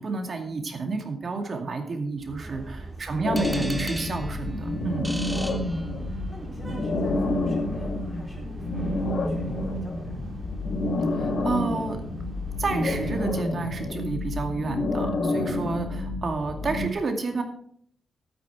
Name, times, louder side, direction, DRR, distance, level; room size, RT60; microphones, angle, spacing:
voice 1, 0.0-5.1 11.1-12.0 12.6-17.4, right 3 dB, 50° right, 4 dB, 2.3 m, -30 dB
sound 1, 2.2-13.4, right 2 dB, 30° right, 2.6 m, -41 dB
voice 2, 2.4-3.3 5.4-10.3, right 1 dB, 30° left, -7 dB, 5.6 m, -46 dB
sound 2, 3.2-16.9, left 2 dB, 65° left, 1.5 m, -29 dB
sound 3, 3.4-6.4, right 1 dB, 10° right, 0.7 m, -38 dB
12.5 x 9.2 x 4.7 m, 0.64 s
wide cardioid pair, 110°, 0 cm